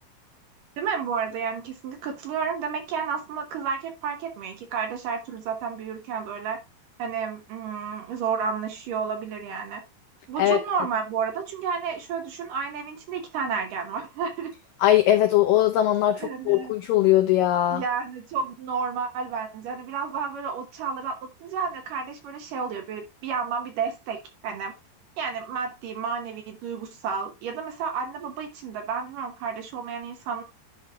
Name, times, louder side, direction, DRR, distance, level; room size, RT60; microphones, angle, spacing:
voice 1, 0.8-6.6 7.0-9.8 10.3-14.5 16.2-16.7 17.7-24.2 24.4-24.7 25.2-30.4, right 6 dB, 65° right, 2.3 m, -31 dB
voice 2, 14.8-17.8, left 13 dB, 85° left, 1.9 m, -20 dB
11.0 x 4.2 x 3.5 m
omnidirectional pair, 4.7 m